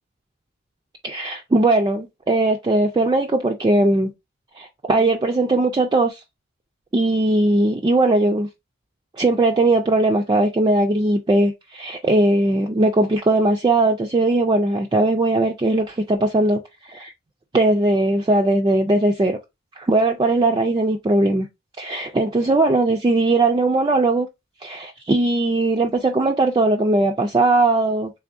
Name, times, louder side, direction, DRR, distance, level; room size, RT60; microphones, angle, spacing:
voice 1, 1.0-4.1 4.6-6.2 6.9-8.5 9.2-16.6 16.9-17.1 17.5-19.4 19.8-21.5 21.8-24.3 24.6-28.1, right 2 dB, 20° right, 0.3 m, -19 dB
3.4 x 3.4 x 2.5 m
head